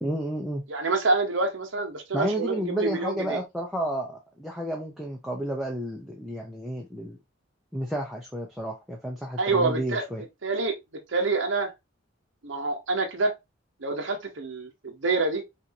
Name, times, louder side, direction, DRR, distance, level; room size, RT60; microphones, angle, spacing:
voice 1, 0.0-0.6 2.1-7.2 7.7-10.2, equal, ahead, 0.7 m, -31 dB
voice 2, 0.7-3.4 9.4-10.0 10.4-10.8 11.1-11.7 12.4-13.3 13.8-15.4, right 3 dB, 75° right, 0.9 m, -27 dB
5.5 x 2.6 x 2.8 m
head